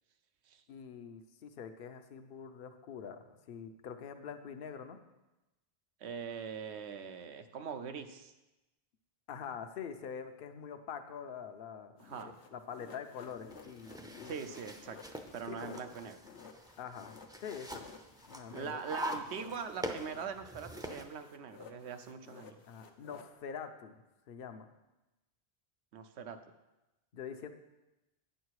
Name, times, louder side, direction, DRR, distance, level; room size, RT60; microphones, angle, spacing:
voice 1, 0.7-5.0 9.3-14.6 15.5-15.8 16.8-17.9 18.3-18.8 22.7-24.7 27.1-27.5, left 7 dB, 65° left, 7 dB, 0.8 m, -45 dB
voice 2, 6.0-8.3 12.0-12.3 14.2-15.0 15.3-16.2 18.5-22.6 25.9-26.4, right 6 dB, 80° right, 9 dB, 1.0 m, -42 dB
sound 1, 12.0-20.4 20.7-23.3, left 7 dB, 90° left, 1.1 m, -55 dB
sound 2, 13.3-21.0, equal, 5° right, 0.4 m, -44 dB
9.2 x 6.6 x 4.7 m, 1.0 s
omnidirectional pair, 1.1 m